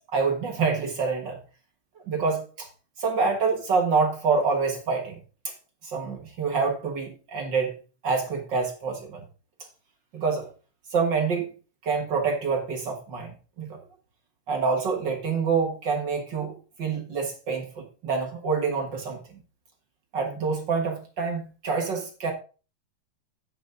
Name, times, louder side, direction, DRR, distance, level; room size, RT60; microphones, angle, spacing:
voice 1, 0.1-1.4 2.1-2.7 3.0-5.1 5.8-7.7 8.0-9.2 10.1-10.5 10.9-11.5 11.8-13.8 14.5-19.2 20.1-22.3, right 5 dB, 45° right, 2 dB, 1.6 m, -26 dB
9.1 x 8.5 x 3.8 m, 0.34 s
omnidirectional pair, 3.8 m